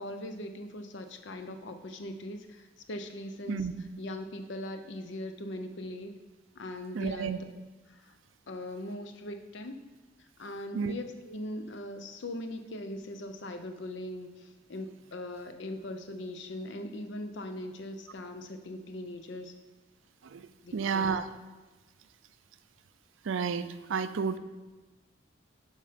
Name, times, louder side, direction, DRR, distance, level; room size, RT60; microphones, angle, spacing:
voice 1, 0.0-6.1 6.5-7.4 7.9-8.1 8.5-9.8 10.4-19.5 20.6-21.2, left 1 dB, 65° left, 7 dB, 0.7 m, -40 dB
voice 2, 6.9-7.4 10.7-10.9 20.3-20.4 20.7-21.3 23.3-24.4, right 6 dB, 80° right, 12 dB, 0.4 m, -30 dB
7.3 x 5.6 x 5.1 m, 1.2 s
head